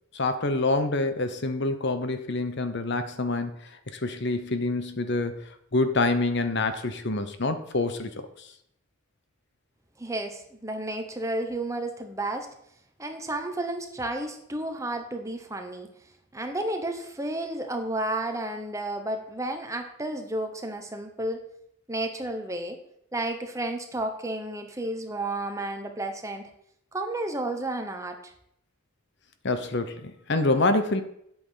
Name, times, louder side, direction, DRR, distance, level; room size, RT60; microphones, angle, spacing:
voice 1, 0.1-3.6 3.9-5.4 5.7-8.5 29.4-31.0, left 2 dB, 55° left, 10 dB, 1.0 m, -26 dB
voice 2, 10.0-12.5 13.0-15.9 16.3-21.4 21.9-22.8 23.1-26.5 26.9-28.3, right 1 dB, 15° right, 5 dB, 1.1 m, -32 dB
9.7 x 8.5 x 5.7 m, 0.72 s
head